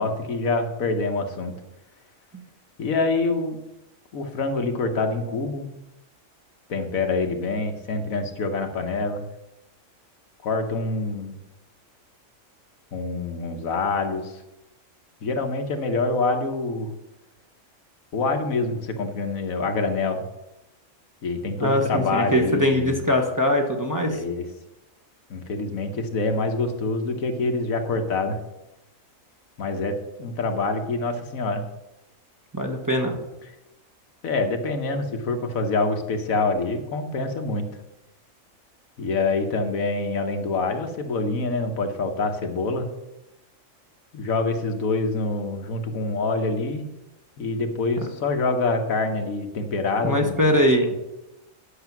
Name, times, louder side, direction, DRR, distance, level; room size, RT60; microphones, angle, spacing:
voice 1, 0.0-1.5 2.8-3.6 4.1-5.7 6.7-9.3 10.4-11.3 12.9-14.4 15.2-16.9 18.1-20.2 21.2-23.0 24.1-24.5 25.3-28.4 29.6-31.6 34.2-37.7 39.0-42.9 44.1-46.8 47.4-50.4, left 3 dB, 85° left, 5 dB, 1.5 m, -26 dB
voice 2, 21.6-24.2 32.5-33.1 50.0-50.9, equal, 15° right, 1 dB, 1.1 m, -21 dB
10.0 x 6.6 x 6.0 m, 0.94 s
omnidirectional pair, 1.4 m